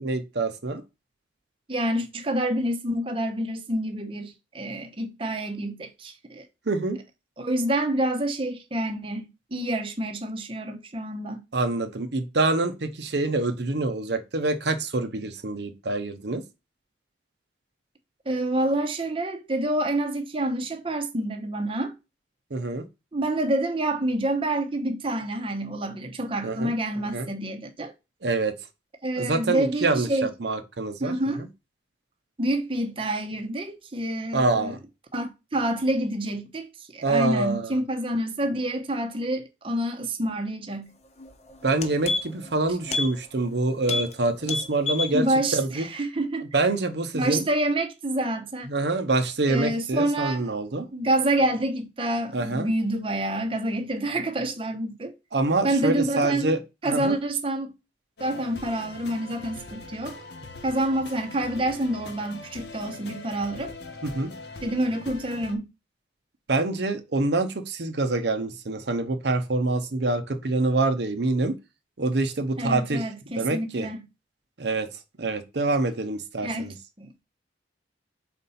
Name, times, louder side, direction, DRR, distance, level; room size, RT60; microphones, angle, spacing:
voice 1, 0.0-0.8 6.7-7.0 11.5-16.4 22.5-22.9 26.4-26.7 27.1-27.3 28.2-28.5 29.2-31.5 34.3-34.8 37.0-37.7 41.6-45.2 45.5-45.9 46.5-47.5 48.7-50.9 52.3-52.7 55.3-56.6 56.9-57.2 64.0-64.3 66.5-71.6 72.0-73.1 73.4-73.9 74.6-74.9 75.2-76.7, right 2 dB, 65° right, 0.8 m, -26 dB
voice 2, 1.7-6.5 7.4-11.4 18.3-21.9 23.1-27.9 29.0-30.3 31.0-31.4 32.4-34.7 35.1-40.9 45.1-46.5 47.1-48.7 49.5-50.6 50.9-55.1 55.6-56.5 56.8-57.7 58.2-60.2 60.6-63.7 64.6-65.7 72.6-74.0 76.4-77.2, right 1 dB, 30° right, 0.8 m, -27 dB
sound 1, 41.2-41.3 41.6-42.5 42.9-43.1 43.4-43.5 43.8-44.1 44.4-45.1 45.5-45.6, left 3 dB, 35° left, 0.9 m, -28 dB
sound 2, 58.2-65.6, left 3 dB, 70° left, 1.1 m, -42 dB
4.3 x 4.2 x 5.5 m
head